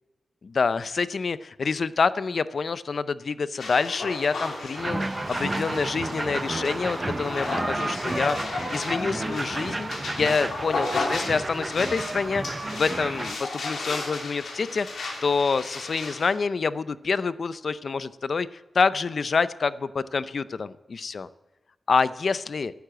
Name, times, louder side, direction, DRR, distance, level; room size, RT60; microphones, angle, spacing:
voice 1, 0.4-12.4 12.7-18.5 18.7-21.3 21.9-22.7, left 5 dB, 55° left, 16 dB, 0.5 m, -27 dB
sound 1, 3.6-16.4, left 3 dB, 80° left, 3.0 m, -34 dB
sound 2, 4.8-13.4, right 2 dB, 25° right, 0.5 m, -31 dB
11.5 x 9.8 x 7.7 m, 1.1 s
wide cardioid pair, 130°, 0 cm